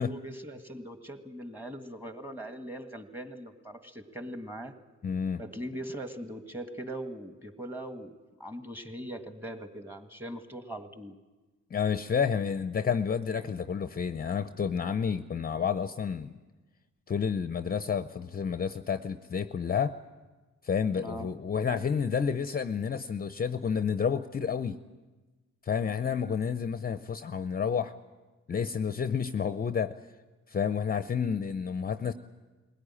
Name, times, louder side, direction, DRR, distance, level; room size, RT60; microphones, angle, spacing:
voice 1, 0.0-4.8 5.4-8.1 8.4-11.2 21.0-21.3, right 1 dB, 5° right, 8 dB, 1.8 m, -40 dB
voice 2, 5.0-5.4 11.7-16.4 17.1-20.0 20.6-24.8 25.6-27.9 28.5-30.0 30.5-32.1, left 6 dB, 30° left, 11 dB, 0.7 m, -30 dB
21.0 x 17.0 x 10.0 m, 1.2 s
cardioid pair, 90°, 30 cm